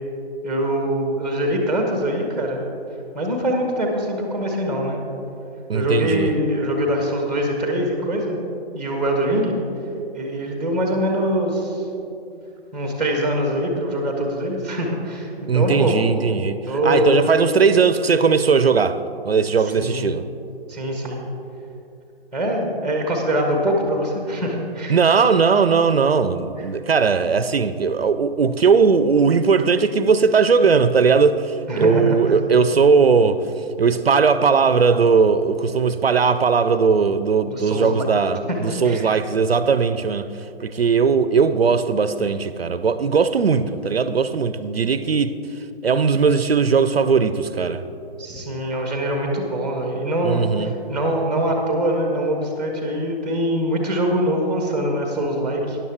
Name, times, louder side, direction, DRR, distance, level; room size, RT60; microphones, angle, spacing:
voice 1, 0.4-2.7 3.1-5.0 5.7-8.4 8.7-9.5 10.1-11.8 12.7-15.9 16.7-17.2 19.7-20.1 20.7-21.2 22.3-25.0 31.7-32.2 37.5-38.1 38.5-39.1 48.2-55.8, equal, ahead, 0.9 m, -23 dB
voice 2, 5.7-6.3 15.5-19.0 19.2-20.2 24.9-33.4 33.8-40.3 40.6-45.3 45.8-47.8 50.2-50.7, right 5 dB, 65° right, 0.5 m, -18 dB
13.0 x 10.5 x 3.4 m
figure-of-eight pair, 140°, 32 cm